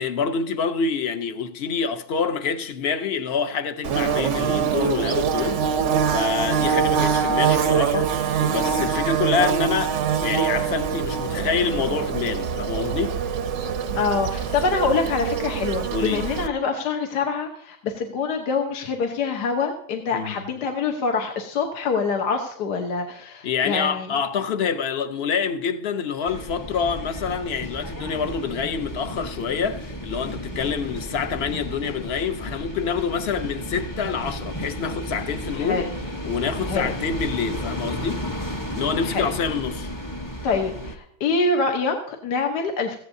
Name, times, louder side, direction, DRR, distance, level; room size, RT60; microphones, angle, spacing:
voice 1, 0.0-5.6 6.0-13.2 15.9-16.3 20.1-20.4 23.4-35.9 36.2-38.3 38.7-39.9, left 6 dB, 50° left, 0.8 m, -27 dB
Bird / Buzz, 3.8-16.5, right 7 dB, 60° right, 0.8 m, -24 dB
voice 2, 14.0-24.1 35.5-35.9 36.7-36.9 39.1-39.3 40.4-43.0, left 4 dB, 70° left, 1.6 m, -25 dB
sound 1, 26.3-41.0, equal, 15° left, 0.8 m, -33 dB
17.0 x 15.0 x 2.7 m
omnidirectional pair, 1.9 m